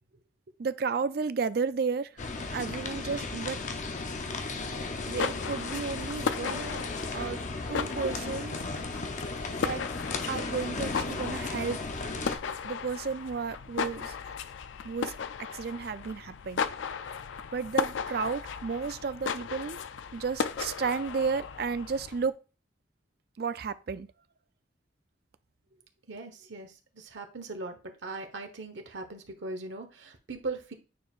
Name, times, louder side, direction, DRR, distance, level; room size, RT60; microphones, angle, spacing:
voice 1, 0.6-2.2 2.5-3.6 5.1-6.8 7.1-7.4 7.7-8.5 9.6-9.9 10.3-11.8 12.6-14.3 14.8-15.2 15.5-16.7 17.5-19.8 20.1-22.4 23.4-24.1, right 5 dB, 55° right, 0.4 m, -32 dB
sound 1, 2.2-12.4, left 3 dB, 40° left, 0.7 m, -35 dB
sound 2, 4.9-22.3, left 6 dB, 90° left, 0.4 m, -36 dB
voice 2, 26.1-30.7, right 3 dB, 80° right, 1.2 m, -39 dB
9.2 x 4.6 x 2.4 m
head